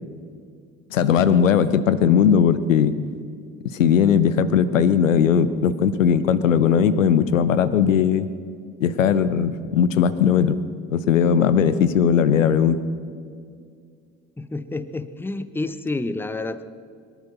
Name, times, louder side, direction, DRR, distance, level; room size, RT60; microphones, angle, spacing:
voice 1, 0.9-3.0 3.7-8.3 8.8-10.6 10.9-12.8, left 8 dB, 80° left, 15 dB, 0.7 m, -18 dB
voice 2, 14.4-16.6, left 2 dB, 5° left, 14 dB, 0.7 m, -29 dB
22.5 x 11.0 x 5.9 m, 2.2 s
figure-of-eight pair, 50°, 39 cm